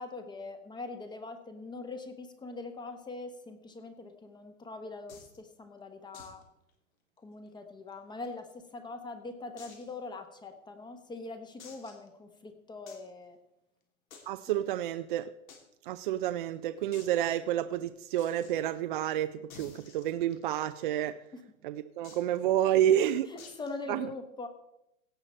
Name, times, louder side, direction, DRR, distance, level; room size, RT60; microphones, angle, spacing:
voice 1, 0.0-6.4 7.2-13.4 14.5-14.6 21.3-21.4 23.3-24.5, left 3 dB, 10° left, 0.9 m, -42 dB
sound 1, 5.1-5.4 6.1-6.4 6.7-6.8 7.2-7.3 7.9-8.7 9.6-9.9 10.5-10.6 11.6-12.1 12.9-13.1 14.1-14.5 15.5-15.6 15.9-16.0 16.2-16.3 16.9-17.2 18.2-18.5 19.5-20.6 22.0-22.4 23.4-23.8, left 5 dB, 75° left, 3.1 m, -52 dB
voice 2, 14.3-15.3 15.8-21.2 21.6-23.3 23.9-24.1, right 11 dB, 40° right, 0.4 m, -29 dB
17.0 x 6.9 x 4.2 m
hypercardioid pair, 135°, 42 cm